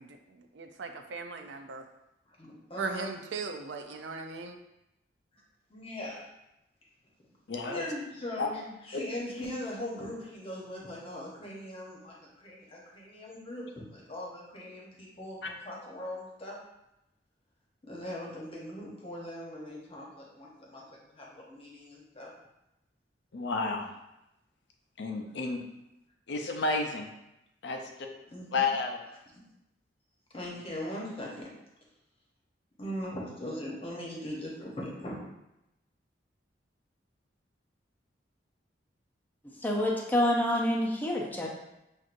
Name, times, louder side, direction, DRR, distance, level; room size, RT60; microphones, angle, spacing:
voice 1, 0.0-1.8 2.8-4.6, right 4 dB, 75° right, 6 dB, 0.4 m, -38 dB
voice 2, 2.4-3.1 5.7-6.2 7.7-16.6 17.8-20.8 21.1-22.3 28.3-28.6 30.3-31.5 32.8-35.2, left 1 dB, 30° left, -3 dB, 1.0 m, -40 dB
voice 3, 7.5-7.8 8.4-8.5 15.4-15.5 23.3-23.9 25.0-25.6 26.3-27.1 27.6-27.8 28.5-29.0, left 3 dB, 70° left, 2 dB, 0.5 m, -30 dB
voice 4, 39.6-41.5, left 1 dB, 10° left, -2 dB, 0.5 m, -27 dB
5.9 x 2.5 x 2.5 m, 0.89 s
head